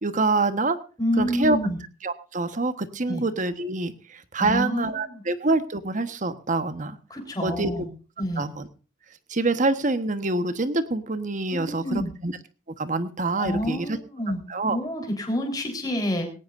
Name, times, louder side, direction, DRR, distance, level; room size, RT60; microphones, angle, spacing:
voice 1, 0.0-0.8 1.2-1.6 2.0-7.0 7.4-7.8 8.4-8.7 9.3-12.3 12.8-14.0 14.5-14.8, right 2 dB, 45° right, 11 dB, 1.3 m, -26 dB
voice 2, 1.0-1.8 3.1-3.2 4.4-5.2 7.1-7.9 8.2-8.5 11.5-12.1 13.4-14.4 14.7-16.3, left 1 dB, 20° left, 2 dB, 4.1 m, -28 dB
18.5 x 17.5 x 2.6 m, 0.36 s
head